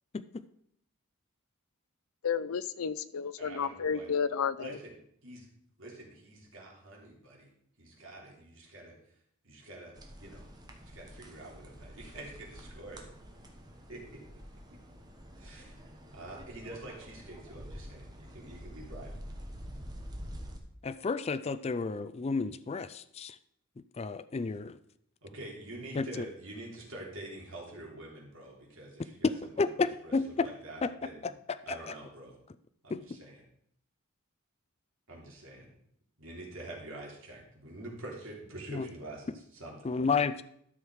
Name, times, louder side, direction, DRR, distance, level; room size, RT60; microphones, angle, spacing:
voice 1, 2.2-4.8, left 6 dB, 80° left, 15 dB, 0.5 m, -32 dB
voice 2, 3.4-4.1 4.5-4.9 5.2-5.5 5.8-7.5 7.8-9.0 9.4-10.4 10.8-13.1 13.9-14.2 15.4-15.9 16.1-19.1 25.2-29.6 30.0-31.3 31.6-32.4 32.8-33.4 35.1-35.7 36.2-39.9, right 1 dB, 65° right, -2 dB, 3.1 m, -46 dB
sound 1, 10.0-20.6, equal, 20° right, 1.2 m, -47 dB
voice 3, 20.8-23.4 24.0-24.8 26.0-26.2 29.2-30.5 30.8-31.3 31.7-31.8 32.9-33.0 38.7-38.9 39.8-40.4, left 4 dB, 30° left, 12 dB, 0.3 m, -31 dB
12.5 x 6.2 x 4.8 m, 0.71 s
head